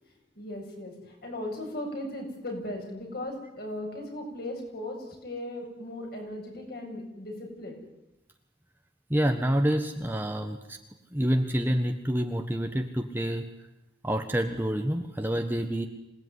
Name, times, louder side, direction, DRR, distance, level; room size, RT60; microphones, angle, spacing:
voice 1, 0.4-0.9 1.2-7.8, left 1 dB, 55° left, 1 dB, 7.9 m, -37 dB
voice 2, 9.1-10.8 11.1-13.4 14.0-15.9, equal, 10° right, 4 dB, 1.4 m, -27 dB
26.5 x 18.5 x 9.8 m, 0.93 s
head